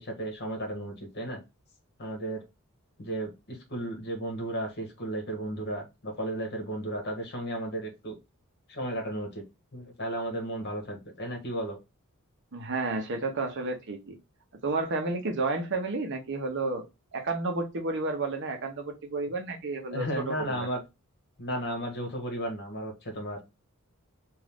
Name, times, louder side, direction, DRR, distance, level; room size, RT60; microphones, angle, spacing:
voice 1, 0.0-1.4 2.0-2.4 3.0-8.1 8.7-9.4 9.7-11.8 19.9-20.8 21.4-23.4, right 1 dB, 50° left, 1.3 m, -34 dB
voice 2, 12.5-14.2 14.6-16.8 17.1-20.7, right 3 dB, 55° right, 0.9 m, -31 dB
3.7 x 2.6 x 3.4 m
head